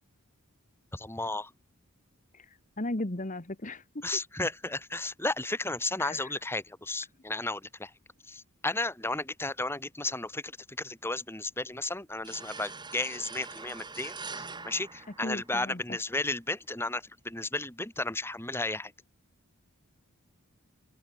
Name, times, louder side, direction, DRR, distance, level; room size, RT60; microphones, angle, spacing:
voice 1, 0.9-1.5 4.0-7.9 8.3-18.9, left 2 dB, 10° left, 2.5 m, -34 dB
voice 2, 2.3-4.0 6.0-6.4 15.2-16.0, left 1 dB, 35° left, 1.5 m, -36 dB
sound 1, 12.2-15.8, right 4 dB, 20° right, 6.4 m, -43 dB
open air
head